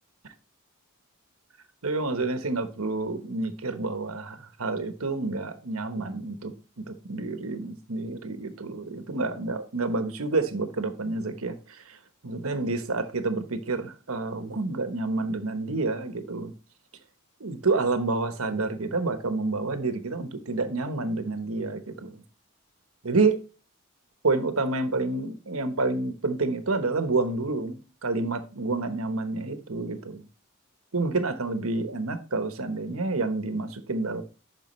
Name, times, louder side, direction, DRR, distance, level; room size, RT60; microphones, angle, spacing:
voice 1, 1.8-6.5 6.9-11.6 12.2-16.5 17.4-22.2 23.0-23.4 24.2-30.2 30.9-34.2, right 3 dB, 85° right, 1.1 m, -28 dB
11.0 x 5.0 x 3.1 m
head